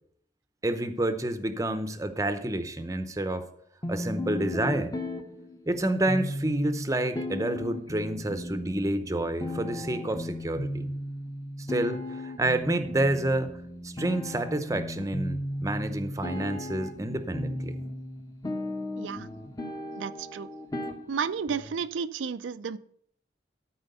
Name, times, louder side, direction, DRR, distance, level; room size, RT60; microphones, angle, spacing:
voice 1, 0.6-3.5 3.9-4.9 5.7-10.9 11.7-13.5 13.8-17.8, right 1 dB, 15° right, 10 dB, 0.7 m, -29 dB
sound 1, 3.8-21.8, left 1 dB, 20° left, 0.9 m, -36 dB
voice 2, 19.0-19.3 20.0-20.5 21.1-22.8, right 6 dB, 90° right, 12 dB, 0.4 m, -32 dB
13.0 x 4.4 x 6.7 m, 0.65 s
head